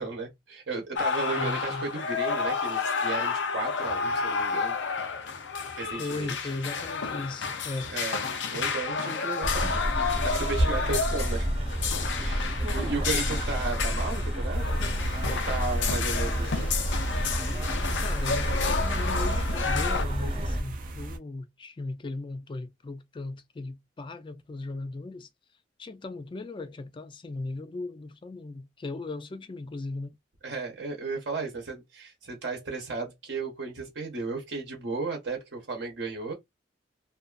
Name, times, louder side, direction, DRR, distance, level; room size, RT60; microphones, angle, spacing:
voice 1, 0.0-4.8 5.8-6.3 7.9-8.2 8.5-11.5 12.2-14.8 15.3-16.7 30.4-36.3, right 3 dB, 70° right, 0.8 m, -34 dB
sound 1, 1.0-20.0, left 5 dB, 85° left, 0.5 m, -31 dB
voice 2, 1.3-1.9 6.0-7.9 18.0-25.3 25.8-30.1, left 2 dB, 30° left, 0.4 m, -37 dB
sound 2, 9.4-20.6, equal, 30° right, 0.9 m, -29 dB
sound 3, 14.5-21.2, right 1 dB, 50° right, 0.4 m, -37 dB
2.5 x 2.3 x 2.3 m
head